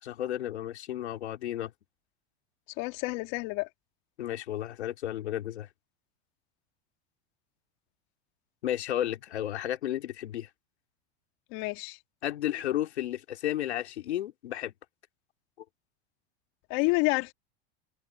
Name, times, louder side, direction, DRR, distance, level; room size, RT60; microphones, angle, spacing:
voice 1, 0.0-1.7 4.2-5.7 8.6-10.5 12.2-14.7, left 12 dB, 85° left, 3.4 m, -33 dB
voice 2, 2.8-3.7 11.5-12.0 16.7-17.3, left 27 dB, 55° left, 2.7 m, -29 dB
hypercardioid pair, 110°, 32 cm